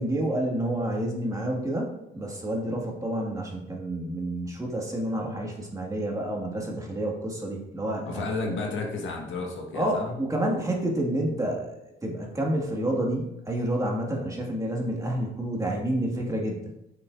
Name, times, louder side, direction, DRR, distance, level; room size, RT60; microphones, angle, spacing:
voice 1, 0.0-1.9 2.1-8.3 9.7-16.6, right 1 dB, 15° right, -1 dB, 1.9 m, -29 dB
voice 2, 8.0-10.2, left 3 dB, 75° left, 0 dB, 1.6 m, -32 dB
8.6 x 5.8 x 2.6 m, 0.85 s
cardioid pair, 90°, 20 cm